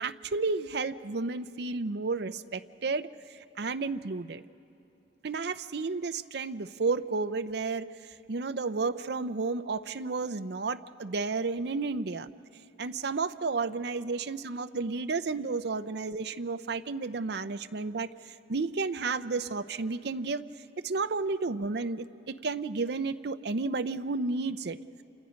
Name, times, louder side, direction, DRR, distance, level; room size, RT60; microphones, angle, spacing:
voice 1, 0.0-4.4 5.2-12.3 12.8-20.4 20.8-24.8, right 4 dB, 65° right, 11 dB, 0.6 m, -32 dB
28.5 x 27.5 x 5.2 m, 2.8 s
head